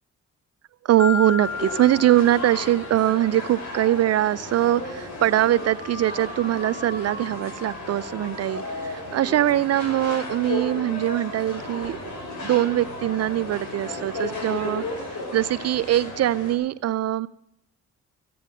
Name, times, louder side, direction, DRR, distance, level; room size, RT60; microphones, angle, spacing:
voice 1, 0.8-12.0 12.4-17.3, right 13 dB, 55° right, 16 dB, 0.5 m, -22 dB
Marimba xylophone, 1.0-3.2, left 5 dB, 5° left, 2.0 m, -32 dB
sound 1, 1.4-16.5, left 2 dB, 65° left, 5.4 m, -34 dB
sound 2, 5.3-9.8, equal, 25° left, 7.7 m, -42 dB
15.0 x 9.3 x 7.7 m, 0.76 s
cardioid pair, 90°, 30 cm